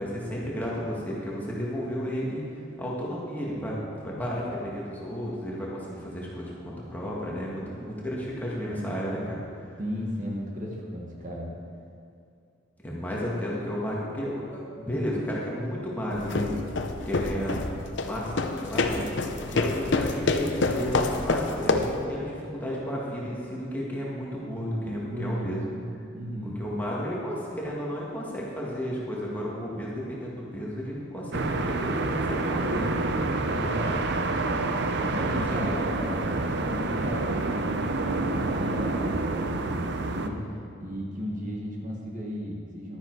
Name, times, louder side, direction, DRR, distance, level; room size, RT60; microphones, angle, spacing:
voice 1, 0.0-9.7 12.8-16.5 17.1-17.6 17.9-19.1 19.5-25.6 26.6-32.9 35.3-35.6, equal, 10° left, -5 dB, 1.8 m, -33 dB
voice 2, 9.8-11.5 24.8-26.6 33.4-34.0 35.1-36.2 36.7-37.8 38.3-40.4 40.8-43.0, equal, 40° right, -2 dB, 1.6 m, -35 dB
sound 1, 16.1-22.0, left 3 dB, 60° left, 0.7 m, -27 dB
sound 2, 31.3-40.3, right 2 dB, 55° right, 0.6 m, -28 dB
12.0 x 9.7 x 4.7 m, 2.5 s
head